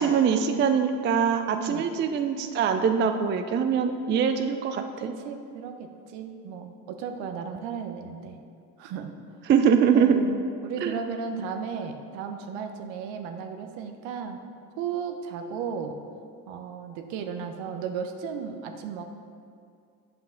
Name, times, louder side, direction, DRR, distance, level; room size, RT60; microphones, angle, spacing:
voice 1, 0.0-5.1 9.5-10.2 10.8-10.9, right 7 dB, 25° right, 7 dB, 0.4 m, -23 dB
voice 2, 1.5-1.8 5.0-8.4 8.8-9.1 9.9-14.4 14.8-16.0 16.5-19.0, right 6 dB, 65° right, 6 dB, 0.9 m, -35 dB
8.6 x 5.5 x 3.7 m, 2.3 s
hypercardioid pair, 65°, 49 cm